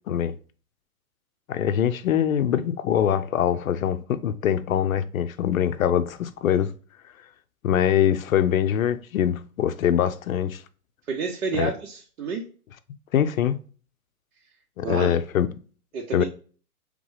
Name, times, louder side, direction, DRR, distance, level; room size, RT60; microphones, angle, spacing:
voice 1, 1.5-6.7 7.6-10.6 11.5-11.7 13.1-13.6 14.8-15.5 16.1-16.2, left 9 dB, 65° left, 0.6 m, -23 dB
voice 2, 11.1-12.4 14.8-15.2 15.9-16.2, right 5 dB, 70° right, 1.0 m, -29 dB
3.7 x 3.5 x 3.2 m
hypercardioid pair, 170°, 45 cm